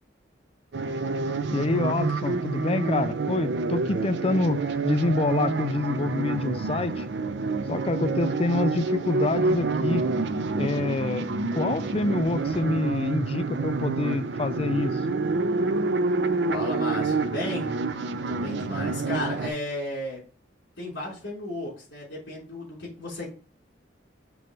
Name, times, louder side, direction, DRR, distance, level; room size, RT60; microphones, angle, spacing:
sound 1, 0.7-19.5, right 3 dB, 65° right, 0.5 m, -28 dB
voice 1, 1.5-7.1 7.7-10.1 10.6-11.3 11.5-15.0, left 2 dB, 30° left, 0.4 m, -27 dB
voice 2, 16.5-17.7 18.3-20.2 20.8-23.3, left 1 dB, 65° left, 3.5 m, -33 dB
6.1 x 3.2 x 5.2 m
head